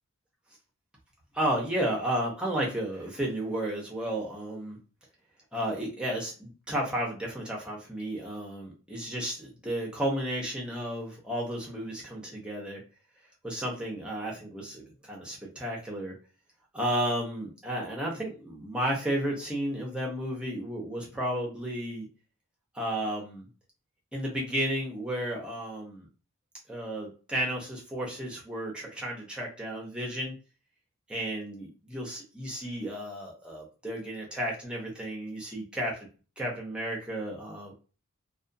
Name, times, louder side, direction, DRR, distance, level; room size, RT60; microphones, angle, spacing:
voice 1, 1.3-4.8 5.5-12.8 13.4-16.2 16.7-22.1 22.7-23.5 24.1-26.1 26.7-30.3 31.1-36.1 36.4-37.8, right 1 dB, 5° right, -2 dB, 0.7 m, -33 dB
2.4 x 2.3 x 2.5 m, 0.35 s
head